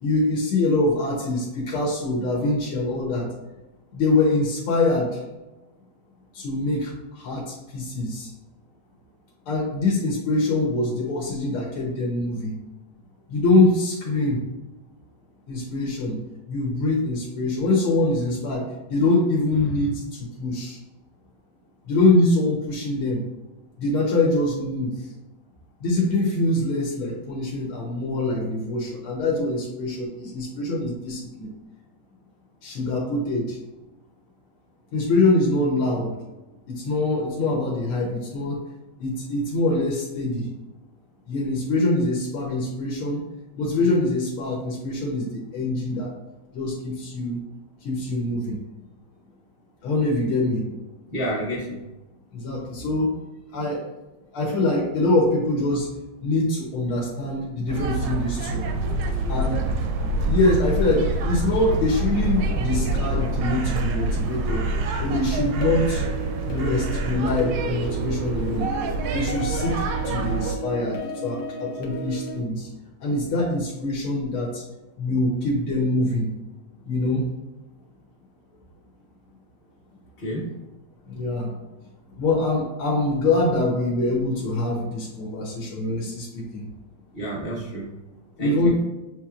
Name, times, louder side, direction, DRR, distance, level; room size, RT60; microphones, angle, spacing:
voice 1, 0.0-3.3 3.9-5.2 6.3-8.3 9.5-12.5 13.3-14.4 15.5-16.2 16.5-20.8 21.8-23.2 23.8-24.9 25.8-31.5 32.6-33.6 34.9-36.1 36.7-38.6 39.0-40.5 41.3-43.2 43.5-46.1 46.5-47.4 47.8-48.6 49.8-50.8 52.3-53.1 53.5-53.9 54.3-55.9 56.2-58.7 59.3-59.6 60.2-64.7 65.0-66.0 66.4-68.7 69.1-69.7 70.0-72.7 73.0-74.6 75.0-76.3 76.8-77.3 81.1-81.5 82.1-86.7 88.4-88.7, left 2 dB, 90° left, -2 dB, 1.7 m, -24 dB
voice 2, 51.1-51.8 80.2-80.5 87.1-87.9 88.4-88.7, equal, 40° left, -8 dB, 0.7 m, -29 dB
sound 1, 57.7-70.5, right 2 dB, 75° right, 1.1 m, -26 dB
sound 2, 65.6-72.4, right 1 dB, 70° left, 0.8 m, -34 dB
7.0 x 2.9 x 2.4 m, 1.0 s
omnidirectional pair, 2.3 m